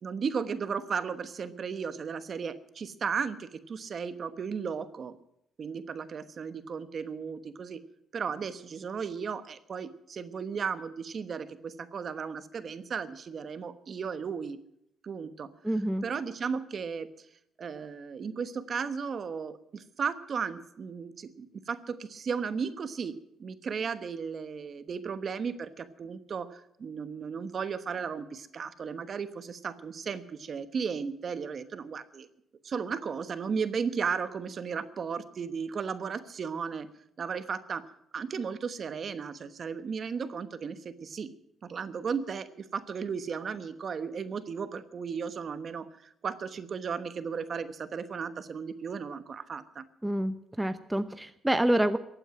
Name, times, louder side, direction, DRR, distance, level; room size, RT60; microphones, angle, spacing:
voice 1, 0.0-5.2 5.6-7.8 8.1-14.6 15.0-15.5 16.0-17.1 17.6-32.3 32.6-36.9 37.2-41.3 41.6-49.8, right 6 dB, 50° right, 11 dB, 1.1 m, -35 dB
voice 2, 15.6-16.0 50.0-52.0, right 1 dB, 10° right, 10 dB, 0.8 m, -27 dB
15.5 x 9.0 x 9.1 m, 0.77 s
cardioid pair, 90°, 0 cm